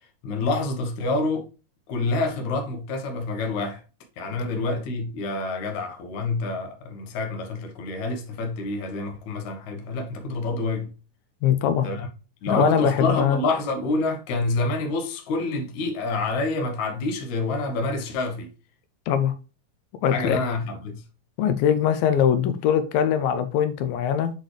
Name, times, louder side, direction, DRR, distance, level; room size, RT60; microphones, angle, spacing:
voice 1, 0.2-1.5 1.9-3.8 4.2-10.9 11.8-12.1 12.4-18.5 20.1-21.0, left 3 dB, 65° left, 2.4 m, -27 dB
voice 2, 11.4-11.9 12.5-13.4 19.1-19.3 20.0-20.4 21.4-24.3, left 8 dB, 90° left, 2.5 m, -21 dB
8.1 x 4.1 x 3.2 m
omnidirectional pair, 4.0 m